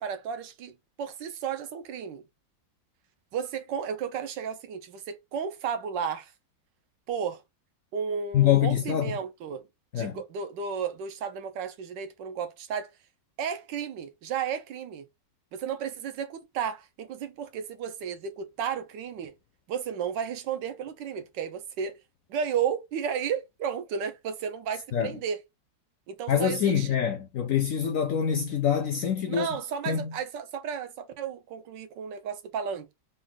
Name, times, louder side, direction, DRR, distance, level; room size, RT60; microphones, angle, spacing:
voice 1, 0.0-2.2 3.3-6.3 7.1-7.4 7.9-9.6 9.9-12.9 13.4-15.0 15.5-19.3 19.7-22.0 22.3-25.4 26.1-26.9 29.3-32.9, right 7 dB, 85° right, 1.4 m, -33 dB
voice 2, 8.3-9.1 9.9-10.2 24.9-25.1 26.3-29.5 29.9-30.1, left 9 dB, 70° left, 0.7 m, -25 dB
4.1 x 2.6 x 3.8 m
omnidirectional pair, 1.9 m